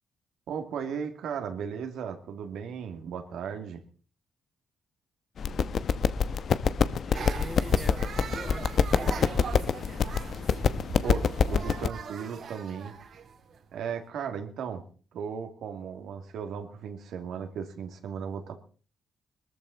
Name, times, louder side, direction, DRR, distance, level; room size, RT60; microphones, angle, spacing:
voice 1, 0.5-3.8 11.0-12.9 13.7-14.8 15.1-18.6, right 7 dB, 80° right, 5 dB, 2.4 m, -36 dB
sound 1, 5.4-11.9, left 6 dB, 60° left, 0.9 m, -26 dB
voice 2, 7.0-9.4, left 2 dB, 20° left, 8 dB, 2.0 m, -43 dB
sound 2, 7.1-14.0, right 6 dB, 65° right, 2.3 m, -41 dB
20.0 x 14.0 x 4.1 m, 0.40 s
cardioid pair, 75°, 0 cm